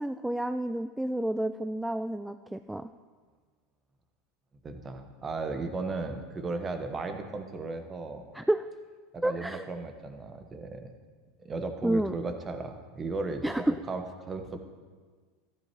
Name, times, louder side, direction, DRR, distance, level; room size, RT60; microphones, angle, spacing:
voice 1, 0.0-2.9 8.3-8.7 9.2-9.6 11.8-12.1 13.4-13.8, right 1 dB, 5° right, 10 dB, 0.3 m, -30 dB
voice 2, 4.6-8.2 9.1-10.9 11.4-14.6, right 3 dB, 25° right, 7 dB, 1.2 m, -35 dB
14.0 x 12.0 x 3.1 m, 1.5 s
hypercardioid pair, 85°, 0 cm